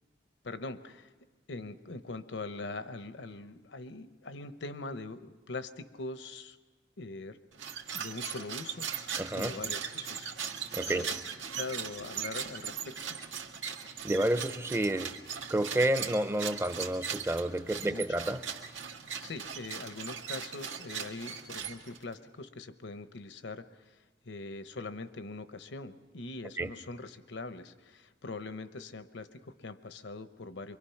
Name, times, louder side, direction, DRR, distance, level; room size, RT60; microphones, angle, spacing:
voice 1, 0.4-1.1 1.5-6.6 7.0-7.4 7.9-8.9 9.4-10.3 10.9-11.1 11.5-13.2 17.8-18.0 19.2-24.0 24.2-30.8, left 3 dB, 75° left, 11 dB, 0.9 m, -42 dB
sound 1, 7.5-22.1, right 7 dB, 90° right, 1.7 m, -39 dB
voice 2, 9.2-9.5 10.7-11.1 13.8-15.2 15.5-18.5 26.6-26.7, right 1 dB, 15° right, 11 dB, 0.6 m, -30 dB
25.0 x 24.0 x 5.8 m, 1.3 s
head